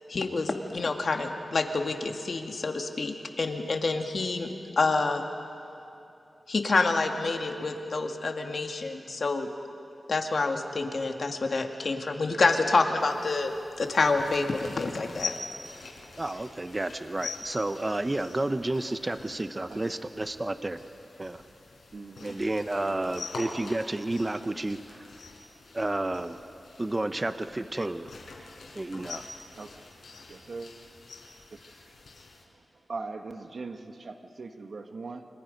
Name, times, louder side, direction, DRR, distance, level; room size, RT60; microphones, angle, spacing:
voice 1, 0.1-4.5 4.8-5.2 6.5-9.5 10.1-13.5 13.8-15.3, left 3 dB, 60° left, 4 dB, 2.0 m, -27 dB
sound 1, 13.0-32.4, left 3 dB, 80° left, 4.5 m, -44 dB
voice 2, 16.2-20.8 21.2-21.4 22.2-25.1 25.7-26.4 26.8-28.1 28.7-29.2, right 2 dB, 25° right, 10 dB, 0.8 m, -31 dB
voice 3, 21.9-22.4 29.6-29.8 30.3-30.7 31.5-31.8 32.9-35.3, right 3 dB, 65° right, 6 dB, 1.6 m, -40 dB
29.0 x 26.0 x 5.3 m, 2.7 s
wide cardioid pair, 75°, 0 cm